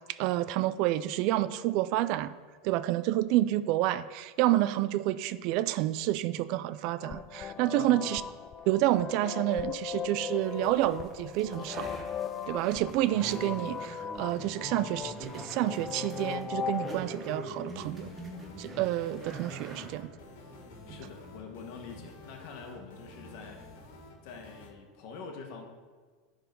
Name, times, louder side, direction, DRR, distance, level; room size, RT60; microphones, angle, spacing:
voice 1, 0.2-2.4 2.6-8.2 8.7-11.9 12.5-18.1 18.6-20.1, right 14 dB, 55° right, 15 dB, 0.3 m, -29 dB
sound 1, 7.0-17.0, left 7 dB, 30° left, 0.4 m, -38 dB
voice 2, 7.5-8.3 20.9-23.6 24.2-25.6, left 5 dB, 60° left, 3 dB, 1.5 m, -45 dB
sound 2, 10.4-24.4, right 1 dB, 15° right, 1.3 m, -45 dB
sound 3, 17.7-24.7, left 3 dB, 75° left, 1.8 m, -51 dB
10.0 x 4.0 x 5.3 m, 1.5 s
supercardioid pair, 130°, 0 cm